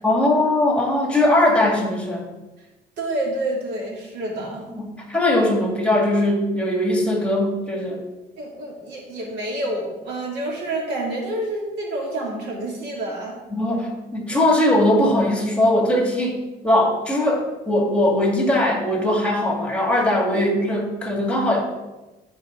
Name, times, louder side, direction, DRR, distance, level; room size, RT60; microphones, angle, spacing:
voice 1, 0.0-2.2 4.7-8.0 13.5-16.4 16.6-21.6, left 1 dB, 5° left, 0 dB, 2.1 m, -20 dB
voice 2, 3.0-4.6 8.4-13.4 20.3-20.4, right 1 dB, 80° right, -2 dB, 2.7 m, -28 dB
13.0 x 4.8 x 3.8 m, 1.1 s
cardioid pair, 110°, 17 cm